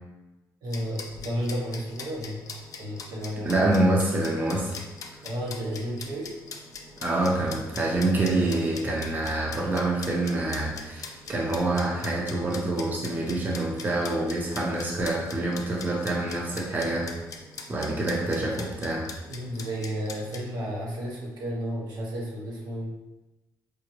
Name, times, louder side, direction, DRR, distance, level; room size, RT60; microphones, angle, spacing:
voice 1, 0.6-2.4 2.8-3.5 5.2-6.3 19.3-22.9, equal, 70° right, -3 dB, 0.9 m, -32 dB
sound 1, 0.7-20.4, left 4 dB, 55° left, 0.5 m, -43 dB
voice 2, 3.5-4.7 7.0-17.1 17.7-19.1, right 2 dB, 25° right, -2 dB, 0.6 m, -26 dB
4.9 x 2.1 x 3.0 m, 1.1 s
cardioid pair, 95°, 7 cm